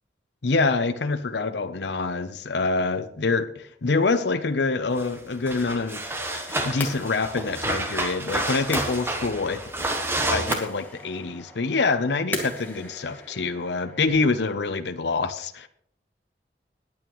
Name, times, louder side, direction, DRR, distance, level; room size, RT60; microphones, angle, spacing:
voice 1, 0.4-6.0 6.3-9.6 10.1-15.7, left 3 dB, 80° left, 9 dB, 0.7 m, -26 dB
sound 1, 5.0-5.1 5.5-10.6, right 1 dB, 15° right, 1.1 m, -29 dB
sound 2, 5.8-14.1, left 1 dB, 10° left, 2.1 m, -39 dB
21.5 x 8.8 x 3.1 m, 0.66 s
head